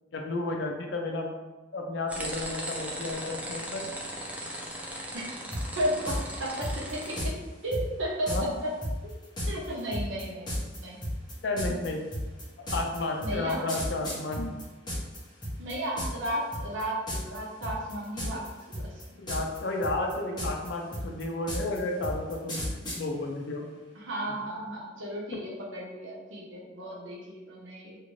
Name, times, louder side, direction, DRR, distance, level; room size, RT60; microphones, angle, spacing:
voice 1, 0.1-1.3 1.7-3.9 8.3-8.5 11.4-12.0 12.7-14.5 19.2-22.7 23.0-23.7 24.3-24.4, left 2 dB, 65° left, 2 dB, 0.5 m, -32 dB
sound 1, 2.1-7.2, equal, 10° right, 0.3 m, -38 dB
sound 2, 5.5-5.6 6.1-6.2 6.6-7.3 7.7-7.8 8.3-8.4 8.8-15.2 15.4-16.3 16.5-16.8 17.1-17.4 17.6-18.5 18.7-19.6 19.8-23.0, equal, 25° left, 0.8 m, -33 dB
voice 2, 5.8-7.3 7.6-8.5 9.5-10.5 10.8-11.0 13.2-13.6 15.6-19.0 24.0-28.0, right 1 dB, 90° right, -4 dB, 0.8 m, -34 dB
2.6 x 2.5 x 3.0 m, 1.2 s
head